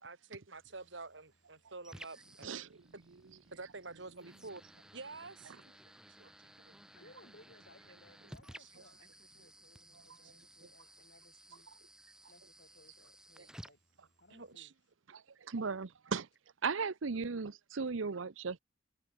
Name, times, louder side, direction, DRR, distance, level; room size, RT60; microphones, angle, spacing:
voice 1, 0.0-2.7 2.9-3.0 3.5-4.6 4.9-5.5 6.2-6.7 8.6-8.7 10.2-10.3 14.3-14.7, right 3 dB, 65° right, 2.3 m, -49 dB
sound 1, 0.5-14.5, right 1 dB, 5° right, 1.1 m, -57 dB
voice 2, 2.4-2.8 9.9-10.0 13.4-13.5 15.1-16.3 16.6-18.6, right 5 dB, 80° right, 0.7 m, -37 dB
voice 3, 6.9-11.7 12.3-13.8 14.2-14.7, left 2 dB, 60° left, 7.1 m, -63 dB
head